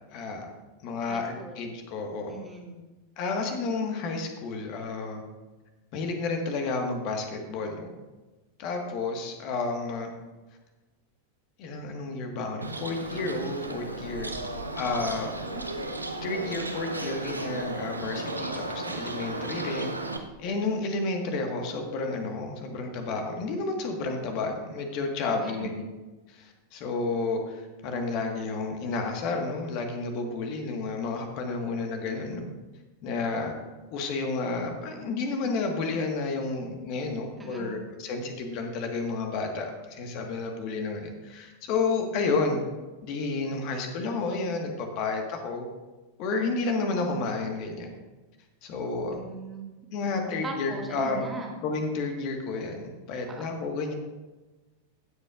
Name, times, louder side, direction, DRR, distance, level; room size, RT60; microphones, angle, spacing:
voice 1, 0.1-0.5 0.8-2.4 3.2-5.2 5.9-7.9 8.6-10.1 11.6-14.3 14.7-15.3 16.2-19.9 20.4-25.8 26.3-32.5 33.0-33.5 33.9-42.6 43.0-45.6 46.2-47.9 48.6-49.2 49.9-51.3 51.6-53.9, left 3 dB, 40° left, 3 dB, 1.6 m, -31 dB
voice 2, 1.0-1.6 2.3-2.8 15.3-15.6 25.4-25.8 37.4-37.8 49.1-49.7 50.2-51.5 53.3-53.5, right 3 dB, 15° right, 0 dB, 2.0 m, -40 dB
Bird, 12.6-20.2, right 2 dB, 80° right, 0.8 m, -34 dB
16.5 x 7.8 x 2.5 m, 1.2 s
figure-of-eight pair, 90°, 0 cm